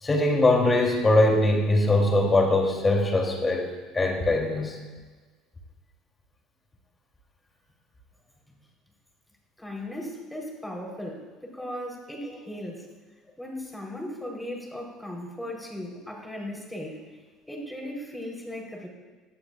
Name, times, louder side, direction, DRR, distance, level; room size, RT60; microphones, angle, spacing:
voice 1, 0.0-3.6 3.9-4.8, left 2 dB, 25° left, 0 dB, 3.3 m, -21 dB
voice 2, 9.6-12.9 13.4-17.0 17.5-18.9, left 1 dB, 5° left, -1 dB, 4.1 m, -37 dB
17.5 x 11.5 x 2.5 m, 1.4 s
hypercardioid pair, 70°, 0 cm